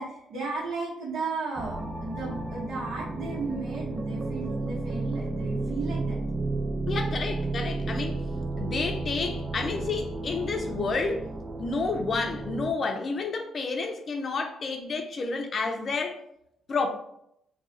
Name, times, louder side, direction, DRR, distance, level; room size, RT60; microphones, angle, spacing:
voice 1, 0.0-6.2, right 3 dB, 75° right, 1.1 m, -35 dB
sound 1, 1.6-12.7, right 2 dB, 25° right, 0.4 m, -32 dB
voice 2, 6.9-8.2 8.6-11.3 11.6-16.2 16.7-16.9, left 4 dB, 45° left, 0.5 m, -30 dB
2.4 x 2.3 x 3.9 m
cardioid pair, 90°, 0 cm